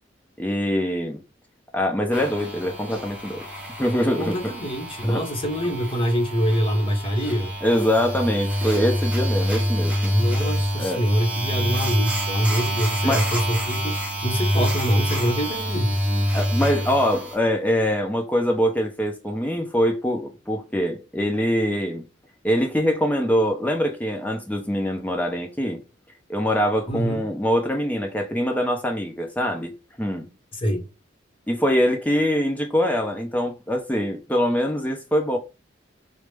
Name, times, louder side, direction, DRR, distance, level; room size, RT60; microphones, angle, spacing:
voice 1, 0.4-1.2 1.7-3.4 3.8-4.4 5.0-5.2 7.6-10.1 10.4-10.5 10.8-11.0 13.0-13.3 16.3-22.0 22.4-25.8 26.3-29.7 30.0-30.3 31.5-35.4, equal, 10° left, 0.6 m, -23 dB
sound 1, 2.1-17.4, equal, 10° right, 1.0 m, -26 dB
voice 2, 4.2-7.5 10.1-14.0 14.2-16.0 26.9-27.3 30.5-30.8, equal, 30° left, 0.9 m, -24 dB
4.8 x 2.1 x 3.3 m
head